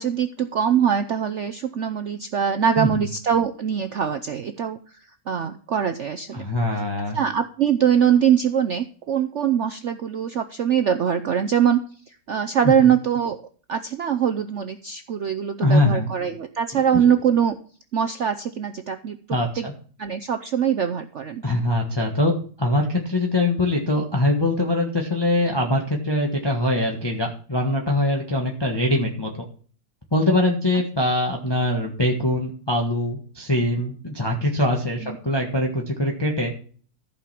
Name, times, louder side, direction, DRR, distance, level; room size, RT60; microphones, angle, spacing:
voice 1, 0.0-4.8 5.3-6.4 7.1-13.4 13.7-17.6 17.9-19.2 19.6-19.7 20.0-21.4 35.0-35.2, right 8 dB, 70° right, 8 dB, 0.6 m, -22 dB
voice 2, 6.3-7.2 12.6-12.9 15.6-16.1 16.7-17.1 19.3-19.7 21.4-22.3 22.6-29.3 30.1-36.5, left 1 dB, 15° left, 0 dB, 1.3 m, -23 dB
14.5 x 5.4 x 5.8 m, 0.43 s
omnidirectional pair, 2.0 m